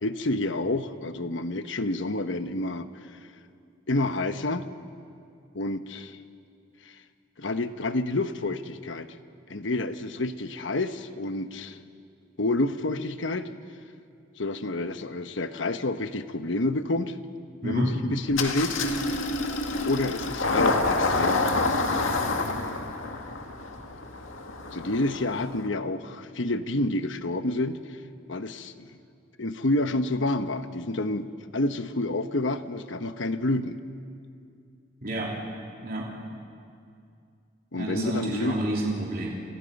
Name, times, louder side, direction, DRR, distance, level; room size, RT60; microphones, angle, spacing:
voice 1, 0.0-3.2 3.9-4.6 5.5-6.2 6.8-7.0 7.4-9.2 9.5-11.8 12.4-13.5 14.4-17.2 17.6-18.8 19.8-21.9 24.7-28.0 28.3-28.9 29.4-33.8 37.7-38.7, left 2 dB, 70° left, 10 dB, 1.1 m, -29 dB
Engine starting, 18.3-25.7, left 3 dB, 90° left, 2.0 m, -28 dB
voice 2, 35.0-35.3 35.8-36.1 37.7-39.3, right 1 dB, 45° right, -3 dB, 3.2 m, -29 dB
30.0 x 27.5 x 5.4 m, 2.4 s
head